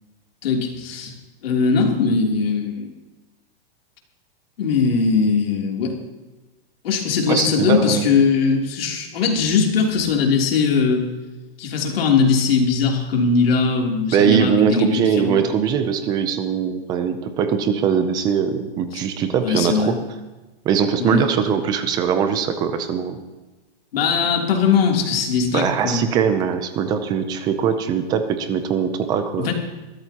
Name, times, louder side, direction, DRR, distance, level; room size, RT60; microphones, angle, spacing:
voice 1, 0.4-1.1 1.4-2.9 4.6-6.0 6.8-11.0 11.6-15.4 19.4-20.0 21.0-21.2 23.9-26.1 29.4-29.5, left 5 dB, 70° left, 0 dB, 3.2 m, -20 dB
voice 2, 7.3-8.1 14.1-20.0 20.7-23.2 25.5-29.5, right 7 dB, 15° right, 9 dB, 0.5 m, -21 dB
21.5 x 13.5 x 2.9 m, 1.1 s
supercardioid pair, 165°, 30 cm